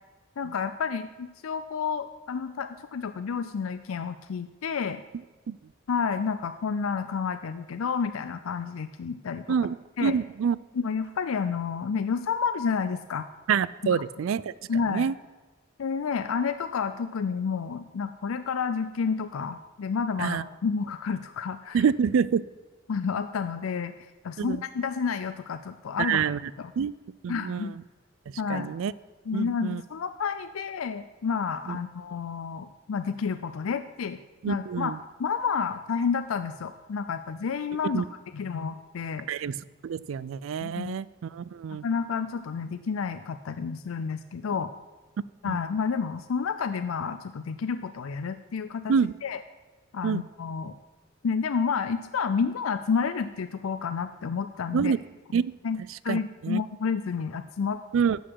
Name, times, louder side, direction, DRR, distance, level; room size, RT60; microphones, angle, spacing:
voice 1, 0.4-5.0 5.9-9.5 10.0-10.1 10.7-13.3 13.8-14.0 14.7-15.1 15.8-21.8 22.9-23.9 24.2-26.2 26.6-26.7 27.3-27.7 28.4-28.7 29.3-34.2 34.5-34.9 35.2-38.0 38.3-39.3 40.6-41.0 41.7-44.7 45.4-49.0 49.2-49.4 49.9-50.7 51.2-54.9 55.6-57.8, left 6 dB, 85° left, 10 dB, 0.4 m, -30 dB
voice 2, 10.0-10.6 13.5-14.5 14.9-15.1 20.2-20.4 21.7-22.4 24.4-24.6 26.0-26.4 26.8-26.9 27.2-27.8 28.5-28.9 29.3-29.8 31.7-31.8 34.4-35.0 37.8-38.1 39.3-41.8 45.5-45.6 48.9-49.1 50.0-50.2 54.7-55.0 55.3-55.5 56.1-56.6 57.9-58.2, right 6 dB, 70° right, 19 dB, 0.3 m, -27 dB
12.0 x 8.2 x 4.7 m, 1.2 s
head